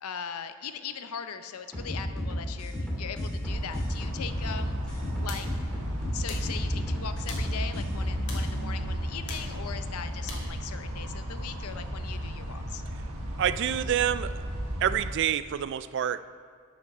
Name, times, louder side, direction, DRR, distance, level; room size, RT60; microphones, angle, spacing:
voice 1, 0.0-5.6 6.1-12.8, left 7 dB, 80° left, 10 dB, 0.6 m, -40 dB
sound 1, 1.7-8.5, equal, 5° left, 2.2 m, -33 dB
sound 2, 3.4-15.1, equal, 75° right, 1.3 m, -34 dB
sound 3, 4.4-10.5, left 3 dB, 55° left, 1.9 m, -46 dB
voice 2, 13.4-14.4 14.8-16.2, right 9 dB, 55° right, 15 dB, 0.3 m, -27 dB
9.4 x 6.2 x 6.5 m, 2.2 s
head